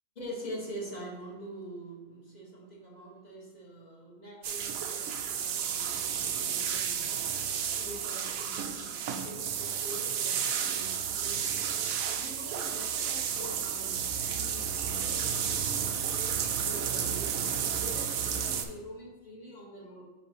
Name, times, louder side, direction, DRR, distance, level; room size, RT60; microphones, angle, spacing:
voice 1, 0.1-7.3 7.8-11.6 12.1-13.9 14.2-20.0, equal, 30° left, -5 dB, 1.7 m, -45 dB
sound 1, 4.4-18.6, right 8 dB, 80° right, 1.0 m, -32 dB
9.1 x 4.0 x 3.0 m, 1.3 s
omnidirectional pair, 1.4 m